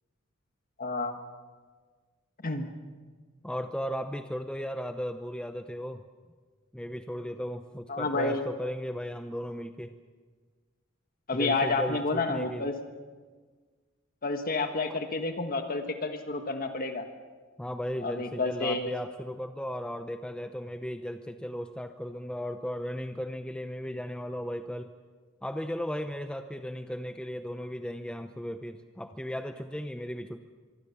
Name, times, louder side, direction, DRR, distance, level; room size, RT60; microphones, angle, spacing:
voice 1, 0.8-1.1 2.4-2.7 7.9-8.4 11.3-12.8 14.2-17.0 18.0-18.9, left 3 dB, 40° left, 6 dB, 1.5 m, -30 dB
voice 2, 3.4-6.0 6.7-9.9 11.3-12.6 14.9-15.0 17.6-24.9 25.4-30.4, equal, 5° left, 7 dB, 0.7 m, -36 dB
25.0 x 24.5 x 7.1 m, 1.5 s
head